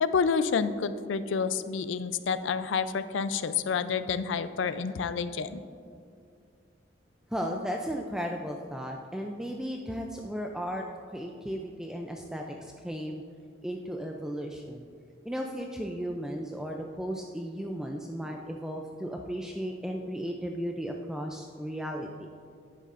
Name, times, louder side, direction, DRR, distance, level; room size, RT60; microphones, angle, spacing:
voice 1, 0.0-5.6, left 5 dB, 75° left, 13 dB, 0.4 m, -29 dB
voice 2, 7.3-13.2 13.6-14.8 15.2-22.3, equal, 5° right, 1 dB, 0.3 m, -35 dB
10.0 x 9.6 x 2.5 m, 2.3 s
head